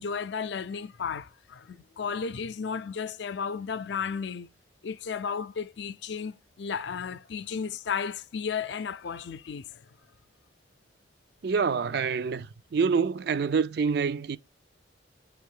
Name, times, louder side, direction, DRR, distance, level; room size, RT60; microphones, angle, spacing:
voice 1, 0.0-4.5 4.8-9.9, left 6 dB, 65° left, 0.5 m, -34 dB
voice 2, 11.4-14.4, right 5 dB, 60° right, 0.4 m, -26 dB
8.3 x 3.5 x 6.4 m
head